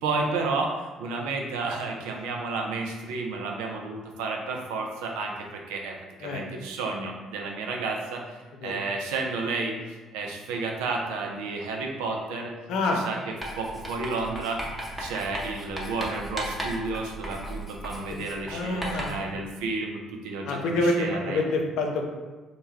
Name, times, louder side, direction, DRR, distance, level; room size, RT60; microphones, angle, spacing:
voice 1, 0.0-9.7 10.1-12.5 12.8-14.6 15.0-21.4, right 3 dB, 75° right, 1 dB, 0.3 m, -31 dB
voice 2, 12.7-13.0 18.1-18.2 18.5-19.3 20.5-22.1, left 2 dB, 65° left, 2 dB, 0.4 m, -27 dB
Writing, 13.4-19.3, right 1 dB, ahead, 0.7 m, -36 dB
2.2 x 2.1 x 3.2 m, 1.2 s
hypercardioid pair, 50°, 0 cm